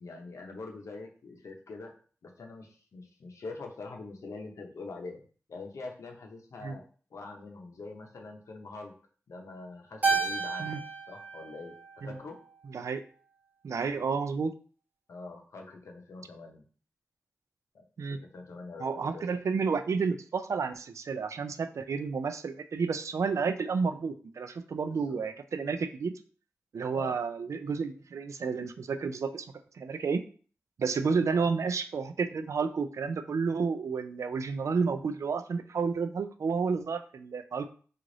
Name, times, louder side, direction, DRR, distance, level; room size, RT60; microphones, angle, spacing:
voice 1, 0.0-1.9 2.2-5.2 5.5-6.8 7.1-8.9 9.3-11.7 12.0-12.4 15.1-16.6 18.2-19.3 24.9-25.3 26.9-27.2 31.2-31.5, left 3 dB, 90° left, 2 dB, 0.7 m, -44 dB
Keyboard (musical), 10.0-12.5, right 4 dB, 35° right, 1.2 m, -32 dB
voice 2, 13.6-14.5 18.0-18.2 18.8-26.1 26.7-29.5 29.7-30.2 30.8-37.7, right 5 dB, 80° right, 9 dB, 0.3 m, -31 dB
3.2 x 2.4 x 3.8 m, 0.42 s
wide cardioid pair, 70°, 5 cm